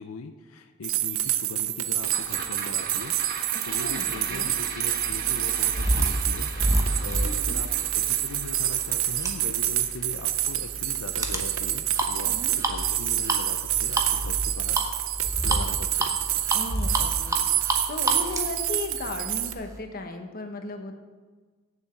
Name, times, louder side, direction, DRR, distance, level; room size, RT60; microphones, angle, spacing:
voice 1, 0.0-3.1 3.7-14.8 15.4-16.2, left 4 dB, 85° left, 8 dB, 0.6 m, -40 dB
sound 1, 0.8-19.5, right 13 dB, 70° right, 0.6 m, -28 dB
sound 2, 2.0-12.5 12.9-13.0, right 4 dB, 45° right, 1.3 m, -40 dB
voice 2, 3.7-4.5 7.2-7.6 12.2-12.5 16.5-20.9, left 2 dB, 45° left, 5 dB, 1.0 m, -36 dB
sound 3, 4.1-19.8, right 1 dB, 15° right, 1.0 m, -30 dB
7.2 x 6.8 x 7.6 m, 1.4 s
head